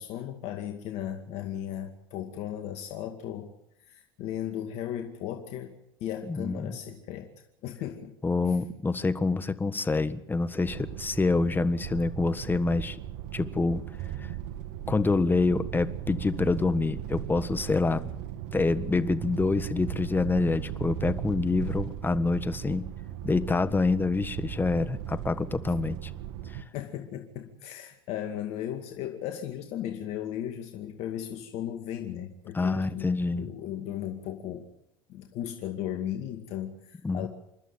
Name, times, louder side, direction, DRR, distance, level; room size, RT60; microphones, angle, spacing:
voice 1, 0.0-3.5 3.8-7.3 7.6-8.2 25.7-25.8 26.7-33.1 33.3-34.7 35.1-37.3, left 10 dB, 60° left, 5 dB, 2.3 m, -36 dB
voice 2, 6.3-6.8 8.2-13.0 13.3-13.8 14.2-14.3 14.9-18.1 18.5-22.9 23.2-26.1 26.5-26.6 32.5-33.5 37.0-37.3, left 3 dB, 15° left, 12 dB, 1.5 m, -27 dB
sound 1, 10.6-26.6, right 11 dB, 70° right, 1.4 m, -37 dB
28.0 x 12.0 x 9.0 m, 0.78 s
hypercardioid pair, 85°, 12 cm